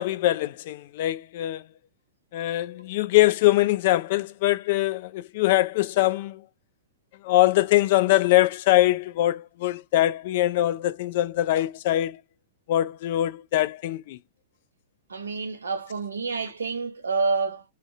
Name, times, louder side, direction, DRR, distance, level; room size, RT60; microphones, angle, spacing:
voice 1, 0.0-1.6 2.3-6.4 7.2-12.2 12.7-14.2, left 15 dB, 55° left, 0.3 m, -23 dB
voice 2, 15.1-17.6, right 4 dB, 80° right, 0.7 m, -28 dB
2.4 x 2.2 x 2.4 m
figure-of-eight pair, 105°, 0 cm